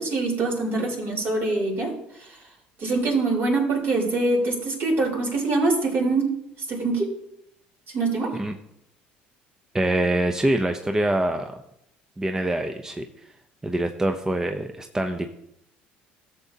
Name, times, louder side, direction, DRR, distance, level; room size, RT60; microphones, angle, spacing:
voice 1, 0.0-1.9 2.2-2.3 2.8-6.3 6.7-7.1 7.9-8.3, right 3 dB, 55° right, -1 dB, 3.7 m, -24 dB
voice 2, 9.7-11.5 12.2-13.3 13.6-15.3, right 1 dB, 15° right, 5 dB, 0.7 m, -25 dB
13.5 x 7.1 x 2.8 m, 0.79 s
supercardioid pair, 75°, 4 cm